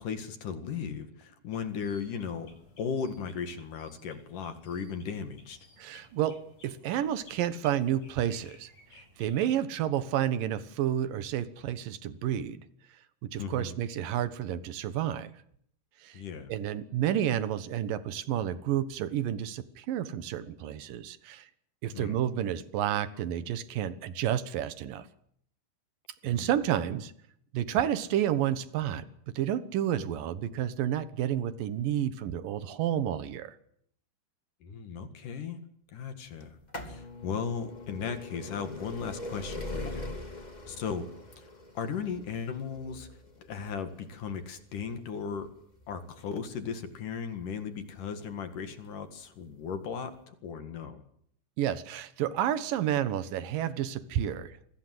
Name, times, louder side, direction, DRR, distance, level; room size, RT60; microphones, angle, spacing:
voice 1, 0.0-2.5 2.8-5.6 13.4-13.8 16.1-16.5 21.9-22.2 26.2-26.5 34.6-35.6 35.9-36.6 36.8-40.1 40.7-43.1 43.4-45.5 45.9-51.0, left 6 dB, 55° left, 9 dB, 2.9 m, -36 dB
sound 1, 1.5-9.5, left 2 dB, 35° left, 8.2 m, -58 dB
voice 2, 5.8-12.6 13.2-15.3 16.0-16.2 16.5-21.5 21.8-25.1 26.2-27.1 27.5-33.6 51.6-54.6, right 10 dB, 65° right, 14 dB, 2.4 m, -30 dB
sound 2, 36.4-48.1 48.9-49.0 49.9-50.0 50.2-50.3, left 1 dB, 15° left, 1.9 m, -42 dB
27.5 x 23.0 x 7.9 m, 0.68 s
omnidirectional pair, 5.2 m